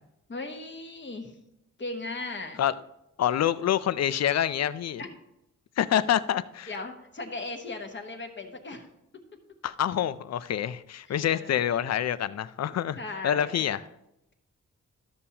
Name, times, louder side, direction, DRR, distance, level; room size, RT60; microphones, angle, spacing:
voice 1, 0.3-1.3 1.8-2.6 5.0-5.1 6.7-8.9 11.1-11.6 12.9-13.8, left 2 dB, 40° left, 5 dB, 1.1 m, -37 dB
voice 2, 3.2-5.0 5.8-6.7 9.6-13.0 13.2-13.8, left 10 dB, 60° left, 15 dB, 0.4 m, -26 dB
12.5 x 6.9 x 2.8 m, 0.84 s
wide cardioid pair, 135°, 30 cm